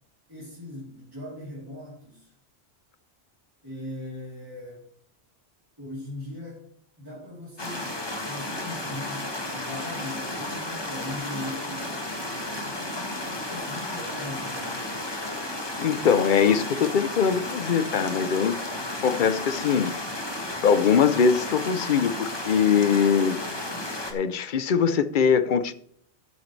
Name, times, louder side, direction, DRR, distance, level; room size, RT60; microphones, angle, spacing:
voice 1, 0.3-2.3 3.6-4.8 5.8-6.6 7.0-12.0 12.6-15.1, left 1 dB, 20° right, 3.5 m, -39 dB
sound 1, 7.6-24.1, left 1 dB, 25° left, 1.4 m, -33 dB
voice 2, 15.8-20.0 20.6-23.4 24.1-25.7, left 6 dB, 50° left, 0.8 m, -22 dB
12.5 x 9.1 x 3.3 m
omnidirectional pair, 1.2 m